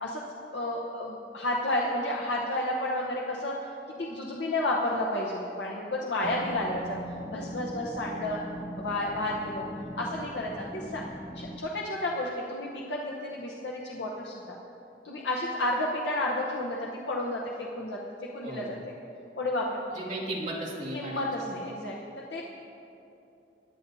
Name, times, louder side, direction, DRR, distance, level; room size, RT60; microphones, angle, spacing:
voice 1, 0.5-3.6 4.0-7.0 7.3-8.4 8.8-9.6 9.9-11.0 11.3-14.6 15.0-18.0 18.3-18.9 19.4-19.8 20.9-22.0 22.3-22.4, left 1 dB, 90° left, -2 dB, 0.9 m, -31 dB
sound 1, 6.2-11.6, equal, ahead, 0.5 m, -40 dB
voice 2, 18.4-18.8 19.9-21.3, right 1 dB, 45° right, -6 dB, 2.3 m, -35 dB
18.0 x 9.6 x 2.7 m, 2.8 s
head